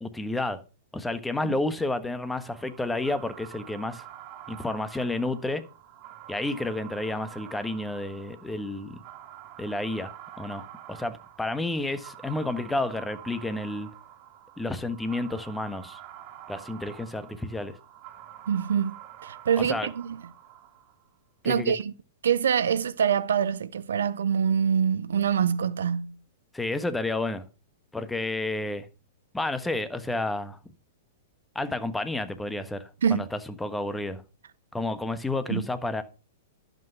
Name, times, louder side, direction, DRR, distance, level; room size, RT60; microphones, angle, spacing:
voice 1, 0.0-0.6 0.9-4.0 4.5-5.6 6.3-9.0 9.6-13.9 14.6-16.0 16.5-17.8 19.6-19.9 21.4-21.7 26.5-27.4 27.9-28.9 29.3-30.6 31.5-34.2 34.7-36.0, left 2 dB, 5° left, 1.3 m, -31 dB
sound 1, 2.2-21.1, right 12 dB, 40° right, 2.4 m, -47 dB
voice 2, 18.5-20.2 21.4-21.9 22.2-26.2 33.0-33.3 35.5-35.6, right 8 dB, 70° right, 0.6 m, -25 dB
11.5 x 7.9 x 5.8 m
figure-of-eight pair, 105°, 0 cm